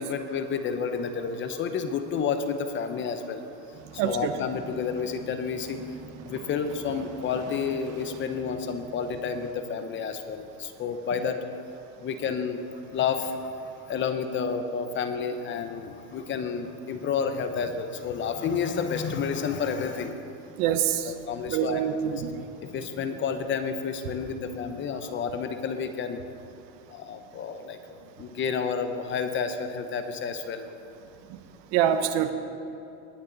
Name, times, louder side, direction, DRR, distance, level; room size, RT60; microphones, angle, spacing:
voice 1, 0.0-5.8 6.2-11.4 12.0-20.2 21.0-21.8 22.1-22.2 22.6-26.2 26.9-30.7, left 6 dB, 30° left, 8 dB, 0.8 m, -30 dB
sound 1, 3.7-9.5, right 4 dB, 40° right, 1.6 m, -45 dB
voice 2, 4.0-4.3 20.5-21.1 21.5-22.4 31.3-31.4 31.7-32.3, right 9 dB, 60° right, 9 dB, 1.0 m, -25 dB
19.5 x 9.6 x 4.0 m, 2.8 s
supercardioid pair, 130°, 38 cm